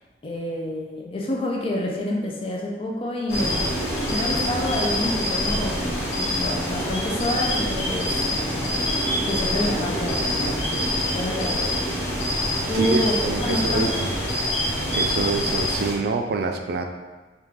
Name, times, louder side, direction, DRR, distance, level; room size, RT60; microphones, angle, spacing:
voice 1, 0.2-3.8 4.1-5.9 6.2-8.2 9.3-11.7 12.7-13.2 13.4-14.0, left 1 dB, 30° left, -1 dB, 0.4 m, -28 dB
sound 1, 3.3-15.9, left 1 dB, 75° left, 1.0 m, -25 dB
voice 2, 12.7-14.1 14.9-16.9, right 4 dB, 60° right, 4 dB, 0.3 m, -26 dB
3.5 x 2.4 x 3.0 m, 1.2 s
head